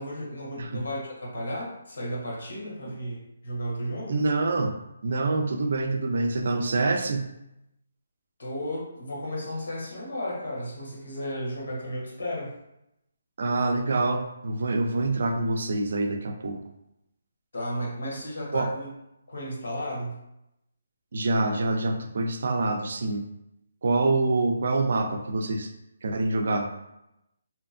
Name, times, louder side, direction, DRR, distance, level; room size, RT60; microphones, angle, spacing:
voice 1, 0.0-4.2 8.4-12.5 17.5-18.9 19.3-20.2, equal, 80° left, -3 dB, 1.1 m, -34 dB
voice 2, 4.1-4.7 5.0-7.2 13.4-16.6 18.5-18.7 21.1-23.3 23.8-25.7 26.0-26.7, right 2 dB, 60° right, 5 dB, 0.4 m, -26 dB
2.8 x 2.3 x 2.5 m, 0.86 s
hypercardioid pair, 160°, 0 cm